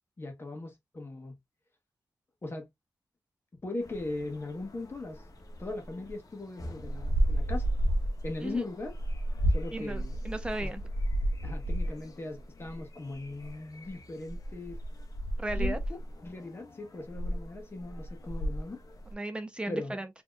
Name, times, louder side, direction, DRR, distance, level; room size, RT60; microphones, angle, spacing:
voice 1, 0.2-1.4 2.4-2.7 3.6-5.2 5.6-7.7 8.2-8.9 9.5-10.1 10.6-10.7 11.4-14.8 15.5-18.8 19.7-20.0, left 2 dB, 30° left, 1.2 m, -39 dB
sound 1, 3.8-6.3 6.5-19.1, right 1 dB, 50° left, 1.0 m, -33 dB
voice 2, 9.7-10.8 15.4-15.8 19.1-20.1, right 1 dB, 15° right, 0.6 m, -35 dB
4.3 x 2.9 x 2.4 m
wide cardioid pair, 150°, 8 cm